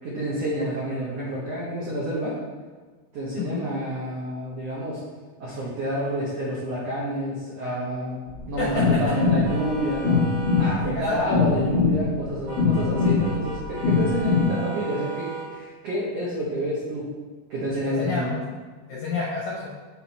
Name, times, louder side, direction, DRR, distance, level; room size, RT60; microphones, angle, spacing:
voice 1, 0.0-2.4 3.1-5.0 5.4-8.1 8.5-10.3 10.6-17.1 17.5-18.4, right 1 dB, 80° right, -6 dB, 1.4 m, -29 dB
sound 1, 8.3-14.5, left 4 dB, 55° left, 1.5 m, -23 dB
voice 2, 8.6-9.0 10.8-11.2 17.8-18.5 18.9-19.7, left 4 dB, 75° left, -5 dB, 1.7 m, -29 dB
sound 2, 9.1-10.8 12.5-15.5, right 4 dB, 60° right, 2.2 m, -36 dB
5.7 x 4.2 x 4.2 m, 1.4 s
omnidirectional pair, 4.4 m